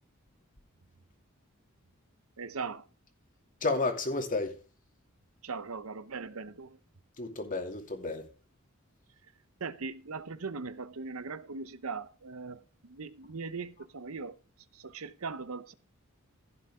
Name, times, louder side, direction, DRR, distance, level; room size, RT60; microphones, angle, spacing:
voice 1, 2.4-2.9 5.4-6.8 9.6-14.4 14.7-15.7, right 4 dB, 75° right, 0.9 m, -39 dB
voice 2, 3.6-4.6 7.2-8.3, left 3 dB, 40° left, 2.6 m, -31 dB
15.5 x 8.0 x 3.7 m
head